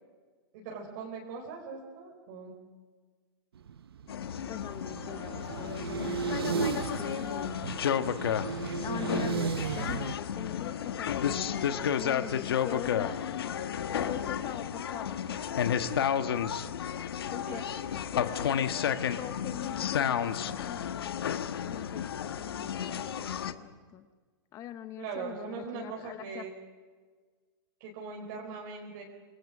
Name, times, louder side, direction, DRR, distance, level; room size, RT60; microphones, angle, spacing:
voice 1, 0.5-2.5 12.6-12.8 17.4-17.6 25.0-26.5 27.8-29.0, right 5 dB, 50° right, -1 dB, 4.7 m, -40 dB
sound 1, 3.6-10.1, right 7 dB, 90° right, 1.0 m, -35 dB
sound 2, 4.1-23.5, left 8 dB, 80° left, 1.3 m, -32 dB
voice 2, 4.5-7.6 8.8-13.2 13.9-16.0 17.1-17.6 18.1-24.1 24.5-26.5, left 11 dB, 25° left, 11 dB, 0.9 m, -42 dB
27.5 x 20.5 x 6.2 m, 1.5 s
hypercardioid pair, 140°, 12 cm